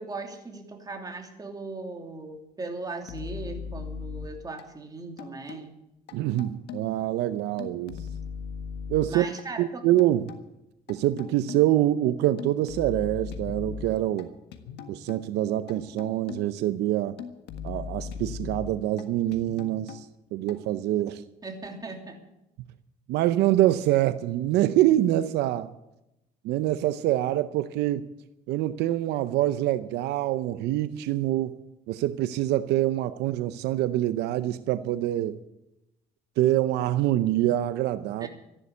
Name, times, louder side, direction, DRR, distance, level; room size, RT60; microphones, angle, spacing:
voice 1, 0.0-5.8 9.1-9.9 21.4-22.2 38.2-38.3, right 3 dB, 20° right, 3.1 m, -38 dB
sound 1, 3.1-4.6 5.2-5.7 6.1-7.0 7.6-9.4 10.0-10.4 10.9-11.8 12.4-14.2 14.5-15.2 15.7-16.6 17.2-19.0 19.3-20.0 20.5-20.6, left 6 dB, 80° left, 1.5 m, -39 dB
voice 2, 6.1-8.0 8.9-9.3 9.6-10.3 10.9-14.3 14.9-17.2 17.6-20.1 20.3-21.2 23.1-25.7 26.4-28.1 28.5-31.6 31.9-35.4 36.4-38.3, right 14 dB, 85° right, 0.7 m, -25 dB
14.0 x 11.0 x 8.3 m
cardioid pair, 110°, 17 cm